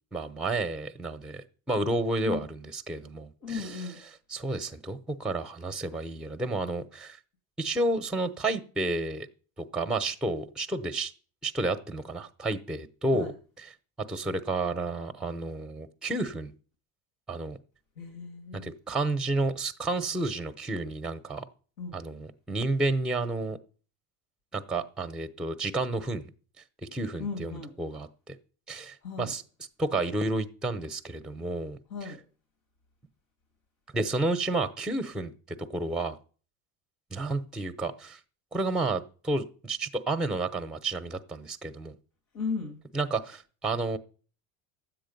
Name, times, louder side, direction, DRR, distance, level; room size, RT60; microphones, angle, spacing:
voice 1, 0.1-3.7 4.3-7.2 7.6-9.3 9.7-11.1 11.4-13.3 14.1-16.5 17.3-17.6 18.5-21.4 21.9-23.6 24.5-26.3 26.9-28.3 28.7-29.4 29.8-31.8 33.9-35.3 35.7-36.2 37.1-38.2 38.5-41.9 42.9-44.0, right 2 dB, ahead, 8 dB, 0.8 m, -31 dB
voice 2, 3.4-4.0 13.1-13.3 18.0-18.7 21.8-22.0 27.2-27.7 29.0-29.3 31.9-32.2 42.3-42.8, left 5 dB, 80° left, 7 dB, 2.4 m, -36 dB
10.0 x 7.7 x 5.3 m, 0.40 s
hypercardioid pair, 85°, 41 cm